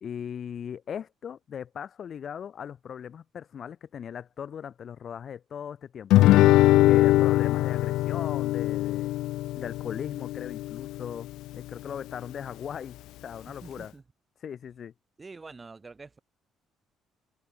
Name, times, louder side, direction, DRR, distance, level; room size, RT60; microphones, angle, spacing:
voice 1, 0.0-6.1 6.9-9.1 9.6-11.3 11.5-13.0 13.2-13.9 14.4-14.9, left 8 dB, 40° left, 0.8 m, -38 dB
Guitar, 6.1-11.2, left 16 dB, 85° left, 0.4 m, -22 dB
voice 2, 13.6-14.0 15.2-16.2, right 4 dB, 20° right, 7.2 m, -46 dB
cardioid pair, 155°, 0 cm